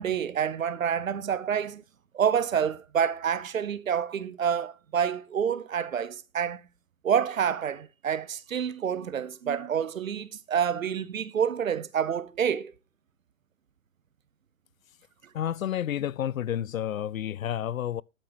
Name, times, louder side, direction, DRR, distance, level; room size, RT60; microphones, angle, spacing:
voice 1, 0.0-1.8 2.1-6.6 7.0-12.7, right 8 dB, 75° right, 0.9 m, -28 dB
voice 2, 15.3-18.0, left 10 dB, 80° left, 0.5 m, -30 dB
11.5 x 9.3 x 2.9 m
figure-of-eight pair, 115°, 40 cm